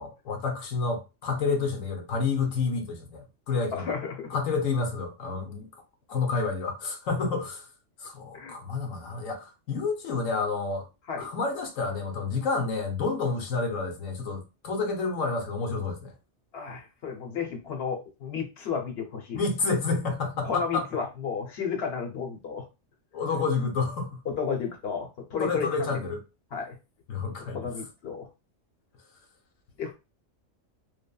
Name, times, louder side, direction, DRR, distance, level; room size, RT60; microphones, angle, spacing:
voice 1, 0.0-4.0 4.3-5.7 6.1-7.7 8.0-10.9 11.2-16.1 19.3-20.9 23.1-24.2 25.4-26.2 27.1-27.7, left 4 dB, 85° left, 1.1 m, -29 dB
voice 2, 3.7-4.4 8.3-8.5 11.1-11.3 16.5-19.4 20.4-22.7 24.3-26.0 26.5-26.8 27.4-28.3 29.8-29.9, left 6 dB, 60° left, 0.9 m, -32 dB
3.3 x 2.1 x 2.2 m
omnidirectional pair, 1.3 m